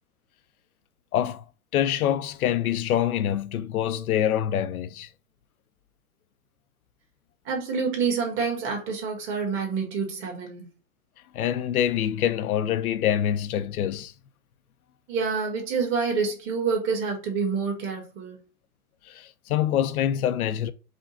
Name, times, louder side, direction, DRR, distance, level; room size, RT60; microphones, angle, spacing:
voice 1, 1.1-1.5 1.7-5.1 11.3-14.1 19.1-20.7, left 10 dB, 70° left, 0.7 m, -25 dB
voice 2, 7.4-10.7 15.1-18.4, right 5 dB, 25° right, 1.5 m, -27 dB
5.1 x 2.3 x 3.9 m
hypercardioid pair, 140°, 45 cm